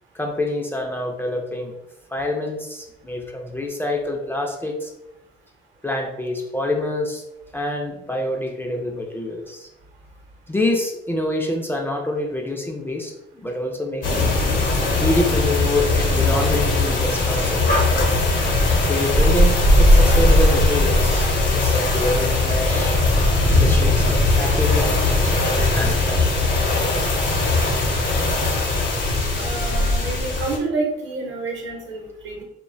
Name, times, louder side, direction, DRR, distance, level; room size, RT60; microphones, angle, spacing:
voice 1, 0.1-1.7 2.1-4.9 5.8-7.2 7.5-9.7 10.5-13.1 13.4-14.3 15.0-17.7 18.8-21.3 21.5-23.0 23.5-26.3, left 1 dB, 10° left, 1 dB, 0.3 m, -26 dB
sound 1, 14.0-30.6, left 2 dB, 65° left, 0.8 m, -19 dB
voice 2, 29.3-32.4, right 3 dB, 75° right, 0 dB, 0.7 m, -28 dB
2.5 x 2.1 x 2.4 m, 0.89 s
cardioid pair, 90°, 20 cm